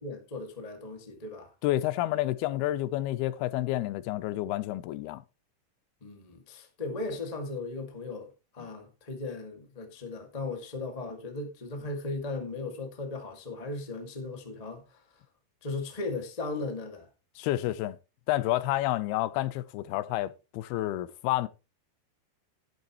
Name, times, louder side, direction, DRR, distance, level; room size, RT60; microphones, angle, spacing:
voice 1, 0.0-1.5 6.0-15.0 15.6-17.1, left 3 dB, 30° left, 0.7 m, -37 dB
voice 2, 1.6-5.2 17.4-18.0 18.3-21.5, left 15 dB, 80° left, 2.6 m, -29 dB
12.0 x 11.0 x 3.0 m
omnidirectional pair, 4.6 m